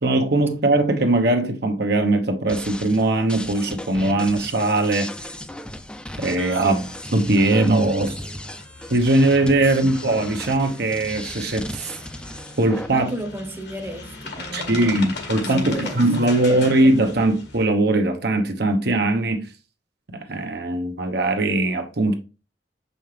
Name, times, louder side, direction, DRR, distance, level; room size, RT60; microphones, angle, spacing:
voice 1, 0.0-5.1 6.2-6.8 7.1-8.2 8.9-11.9 12.6-13.1 14.5-19.5 20.3-22.1, right 2 dB, 65° right, 1.0 m, -20 dB
sound 1, 2.5-12.9, left 1 dB, 5° left, 0.5 m, -36 dB
sound 2, 6.2-17.6, left 3 dB, 70° left, 1.6 m, -39 dB
voice 2, 6.5-6.9 12.9-15.0 15.3-16.0, right 1 dB, 15° right, 1.0 m, -34 dB
6.8 x 5.4 x 3.3 m
head